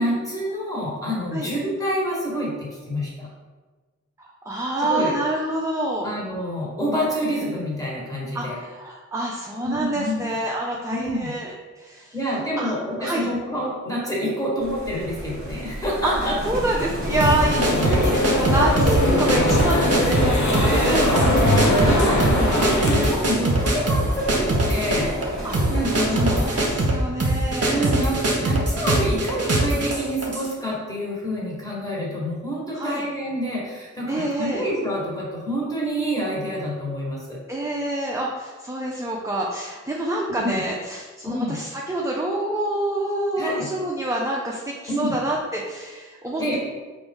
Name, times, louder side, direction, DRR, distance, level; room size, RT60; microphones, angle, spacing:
voice 1, 0.0-3.3 4.9-5.1 6.0-8.6 9.6-10.2 10.9-11.3 12.1-16.4 17.8-18.1 20.1-20.4 20.7-21.1 21.5-26.5 27.7-37.4 40.3-40.6 41.2-41.6 43.4-43.7 44.9-45.1 46.4-46.6, equal, 10° left, -6 dB, 1.4 m, -27 dB
voice 2, 4.2-6.1 8.3-12.1 12.6-13.3 16.0-16.1 16.4-21.0 25.4-25.7 26.1-27.9 32.7-33.0 34.1-34.7 37.5-46.6, right 1 dB, 10° right, -3 dB, 0.5 m, -27 dB
sound 1, 14.6-26.8, equal, 30° right, 1.3 m, -32 dB
sound 2, 17.1-23.1, left 1 dB, 65° left, 0.7 m, -21 dB
sound 3, 17.2-30.5, right 1 dB, 50° right, 0.8 m, -23 dB
4.7 x 2.6 x 3.6 m, 1.3 s
wide cardioid pair, 65°, 31 cm